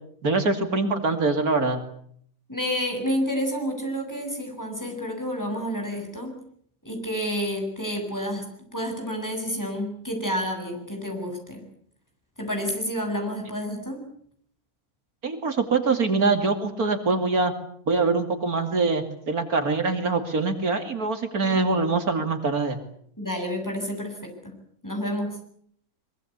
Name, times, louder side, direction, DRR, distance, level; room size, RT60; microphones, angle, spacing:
voice 1, 0.2-1.8 15.2-17.5 17.9-22.8, right 3 dB, 75° right, 7 dB, 3.1 m, -24 dB
voice 2, 2.5-6.4 6.8-11.6 12.4-14.0 21.4-21.5 23.2-24.6 24.8-25.4, equal, 10° left, 2 dB, 8.0 m, -29 dB
24.0 x 23.0 x 8.3 m, 0.64 s
omnidirectional pair, 1.6 m